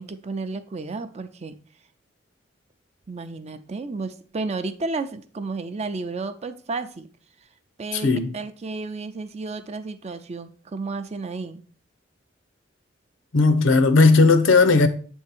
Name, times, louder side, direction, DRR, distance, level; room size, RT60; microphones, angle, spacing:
voice 1, 0.0-1.5 3.1-7.1 7.8-11.6, right 3 dB, 35° right, 0.5 m, -32 dB
voice 2, 7.9-8.3 13.3-14.9, left 3 dB, 80° left, 0.7 m, -16 dB
7.4 x 3.6 x 4.3 m
head